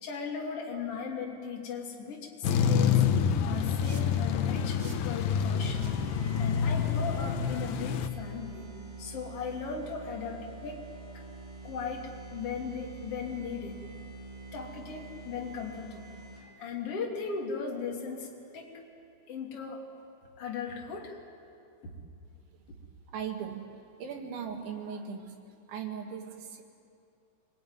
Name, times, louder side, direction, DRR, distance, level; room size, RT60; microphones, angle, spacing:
voice 1, 0.0-3.1 3.4-5.9 6.4-8.7 9.0-10.9 11.1-11.2 11.6-13.8 14.5-16.1 16.4-18.7 19.3-19.9 20.4-21.2 21.8-21.9 22.7-22.8, left 5 dB, 40° left, 0 dB, 2.9 m, -38 dB
sound 1, 2.4-8.1, left 7 dB, 80° left, 2.1 m, -27 dB
sound 2, 3.8-4.2 4.8-5.2 5.8-6.1 6.8-7.0, right 5 dB, 45° right, 1.9 m, -48 dB
sound 3, 5.3-16.7, right 3 dB, 15° right, 7.0 m, -46 dB
voice 2, 23.1-23.7 24.0-25.4 25.7-26.6, right 7 dB, 75° right, 2 dB, 4.3 m, -38 dB
26.0 x 20.0 x 9.5 m, 2.6 s
omnidirectional pair, 5.3 m